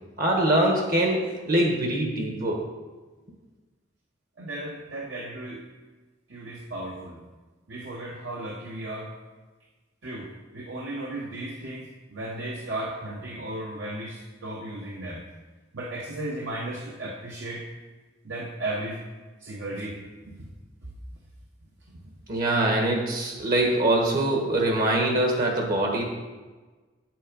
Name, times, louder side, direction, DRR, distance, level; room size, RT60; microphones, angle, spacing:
voice 1, 0.2-2.6 22.3-26.0, right 1 dB, 50° right, 1 dB, 1.4 m, -23 dB
voice 2, 4.4-5.6 6.3-7.2 7.7-9.1 10.0-15.2 15.7-17.7 18.2-19.0 19.4-20.0 20.3-20.5 20.8-20.9 22.0-22.1, right 1 dB, 70° right, -2 dB, 1.2 m, -35 dB
8.4 x 7.6 x 5.2 m, 1.3 s
head